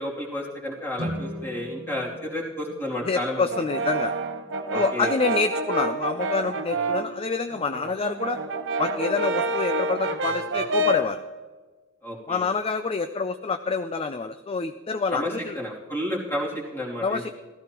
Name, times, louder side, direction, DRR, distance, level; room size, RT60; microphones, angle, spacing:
voice 1, 0.0-3.4 4.7-5.1 12.0-12.4 15.1-17.3, left 1 dB, 10° left, -4 dB, 2.8 m, -31 dB
sound 1, 0.9-4.2, equal, 85° right, 1.3 m, -38 dB
voice 2, 3.0-4.1 4.7-8.4 8.8-11.2 12.3-15.6 17.0-17.3, left 4 dB, 25° left, 9 dB, 0.4 m, -27 dB
Brass instrument, 3.5-7.2 7.5-11.2, right 2 dB, 55° right, 0.8 m, -28 dB
15.5 x 14.0 x 3.0 m, 1.4 s
head